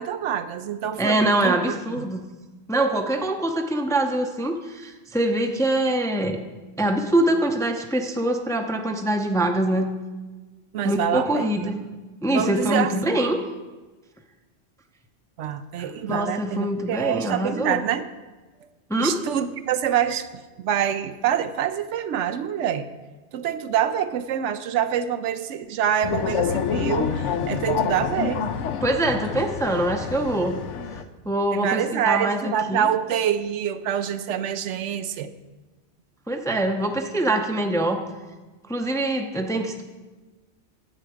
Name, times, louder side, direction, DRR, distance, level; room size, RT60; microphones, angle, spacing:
voice 1, 0.0-2.0 10.7-11.7 12.3-13.2 15.4-18.1 19.0-22.9 23.3-28.5 31.5-35.3, right 9 dB, 90° right, 11 dB, 0.9 m, -26 dB
voice 2, 1.0-2.2 2.7-6.4 6.8-9.9 10.8-11.8 12.2-13.4 15.8-17.8 18.9-19.2 28.8-30.6 31.3-32.9 36.3-38.0 38.7-39.8, right 1 dB, 5° left, 5 dB, 0.4 m, -24 dB
sound 1, 26.0-31.0, left 7 dB, 85° left, 1.0 m, -27 dB
10.5 x 7.9 x 4.9 m, 1.3 s
omnidirectional pair, 1.2 m